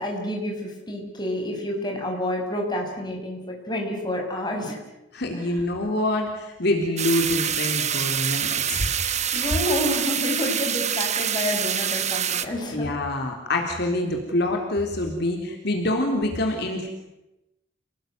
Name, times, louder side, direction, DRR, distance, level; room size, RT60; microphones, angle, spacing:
voice 1, 0.0-4.8 5.3-5.4 9.3-12.9, left 1 dB, 20° left, 0 dB, 6.7 m, -29 dB
voice 2, 5.1-8.9 12.7-16.9, left 1 dB, 55° left, 2 dB, 3.7 m, -26 dB
sound 1, 7.0-12.5, right 9 dB, 35° right, 1.4 m, -26 dB
29.5 x 19.5 x 9.5 m, 0.94 s
head